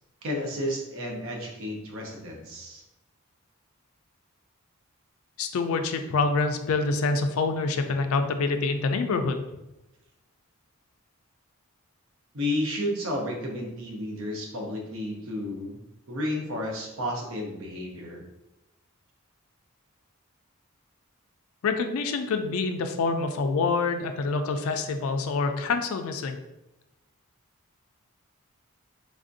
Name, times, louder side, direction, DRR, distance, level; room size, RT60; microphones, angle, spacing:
voice 1, 0.2-2.8 12.3-15.8 16.1-18.2, left 1 dB, 65° right, 0 dB, 0.7 m, -32 dB
voice 2, 5.4-9.4 21.6-26.4, left 4 dB, 70° left, 7 dB, 0.3 m, -26 dB
3.4 x 2.5 x 2.6 m, 0.96 s
head